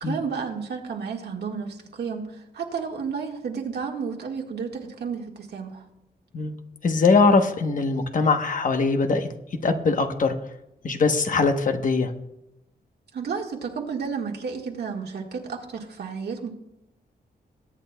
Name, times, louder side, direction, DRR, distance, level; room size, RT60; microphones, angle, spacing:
voice 1, 0.0-5.8 13.1-16.5, right 6 dB, 75° right, 1 dB, 1.6 m, -32 dB
voice 2, 6.8-9.3 9.6-10.4 10.8-12.1, left 4 dB, 50° left, 6 dB, 0.9 m, -21 dB
22.0 x 9.2 x 2.2 m, 0.86 s
wide cardioid pair, 170°, 17 cm